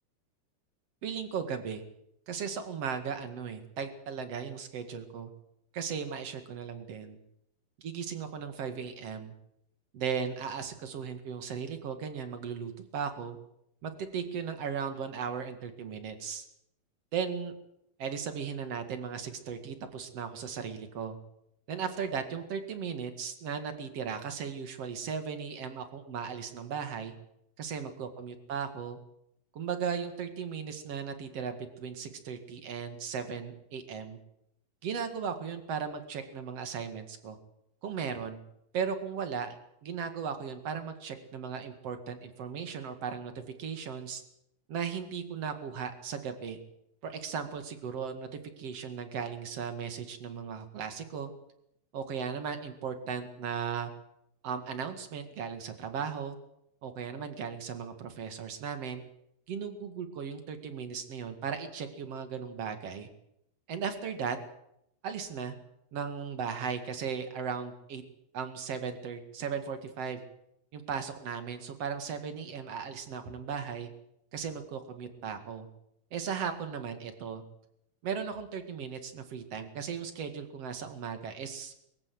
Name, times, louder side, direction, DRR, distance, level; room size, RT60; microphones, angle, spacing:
voice 1, 1.0-1.8 2.3-5.3 5.7-7.2 7.8-9.3 9.9-13.4 13.8-16.4 17.1-17.5 18.0-21.2 21.7-27.1 27.6-29.0 29.5-34.2 34.8-37.4 37.8-38.4 38.7-39.6 39.8-43.3 43.6-44.2 44.7-46.6 47.0-51.3 51.9-53.9 54.4-56.4 56.8-59.0 59.5-63.1 63.7-64.4 65.0-65.5 65.9-68.0 68.3-70.2 70.7-73.9 74.3-75.7 76.1-77.4 78.0-81.7, right 6 dB, 45° right, 8 dB, 2.3 m, -36 dB
23.0 x 15.5 x 7.9 m, 0.77 s
omnidirectional pair, 5.0 m